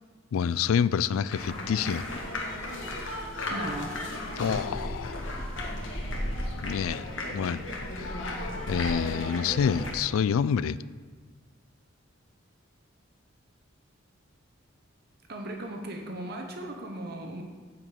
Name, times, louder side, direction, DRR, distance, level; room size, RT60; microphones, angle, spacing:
voice 1, 0.3-2.0 4.4-5.3 6.6-7.0 7.3-7.6 8.0-10.8, left 7 dB, 85° left, 18 dB, 0.3 m, -28 dB
sound 1, 1.3-9.9, left 1 dB, 65° left, 1.6 m, -34 dB
voice 2, 3.5-4.0 6.4-6.5 15.3-17.4, right 1 dB, 50° right, 3 dB, 1.0 m, -37 dB
9.7 x 5.1 x 7.4 m, 1.5 s
head